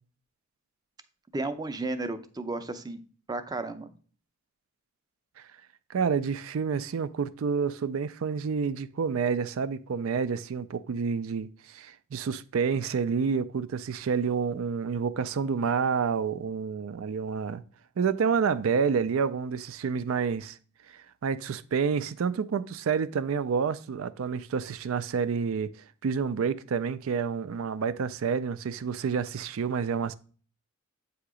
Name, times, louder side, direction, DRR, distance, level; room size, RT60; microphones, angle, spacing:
voice 1, 1.3-3.0 3.3-3.9, right 2 dB, 20° right, 0.5 m, -33 dB
voice 2, 5.9-17.6 18.0-20.6 20.9-25.7 26.0-30.1, right 6 dB, 80° right, 0.4 m, -29 dB
8.0 x 2.9 x 4.8 m
head